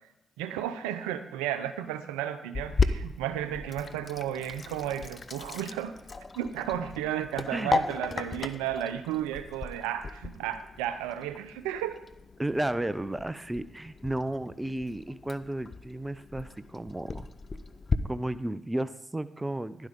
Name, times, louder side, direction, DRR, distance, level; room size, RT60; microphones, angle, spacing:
voice 1, 0.4-5.9 6.3-12.0, right 11 dB, 90° right, 11 dB, 0.6 m, -33 dB
Sink (filling or washing), 2.5-18.0, left 4 dB, 40° left, 0.7 m, -35 dB
voice 2, 12.4-17.3 18.1-19.9, right 1 dB, 15° right, 14 dB, 0.7 m, -33 dB
11.5 x 11.5 x 3.7 m, 0.83 s
hypercardioid pair, 40°, 0 cm